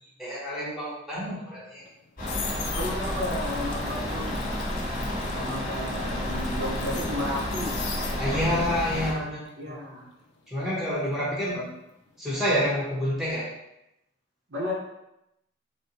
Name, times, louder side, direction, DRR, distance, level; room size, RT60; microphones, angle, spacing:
voice 1, 0.0-1.8 8.2-9.4 9.6-9.7 10.5-11.6 12.2-13.5, equal, ahead, -8 dB, 0.9 m, -28 dB
sound 1, 1.8-8.6 8.9-11.8 12.1-12.4, left 5 dB, 55° left, 0.4 m, -41 dB
sound 2, 2.2-9.1, left 1 dB, 40° left, 1.2 m, -30 dB
voice 2, 2.7-4.5 5.3-7.8 8.3-8.7 9.6-10.1 11.5-11.7 14.5-14.7, left 1 dB, 75° right, -4 dB, 0.9 m, -33 dB
4.1 x 2.2 x 2.7 m, 0.86 s
head